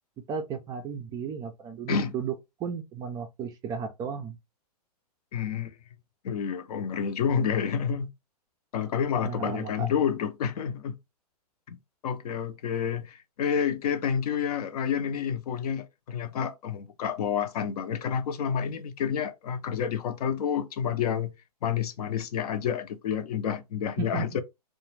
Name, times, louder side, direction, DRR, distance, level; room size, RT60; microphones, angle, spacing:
voice 1, 0.3-2.3 2.6-4.4 9.2-9.9 24.0-24.4, right 6 dB, 20° right, 0.3 m, -34 dB
voice 2, 5.3-5.8 6.2-8.1 8.7-11.0 11.7-11.8 12.0-21.3 21.6-24.4, left 7 dB, 70° left, 0.6 m, -29 dB
2.3 x 2.1 x 3.1 m
hypercardioid pair, 130°, 20 cm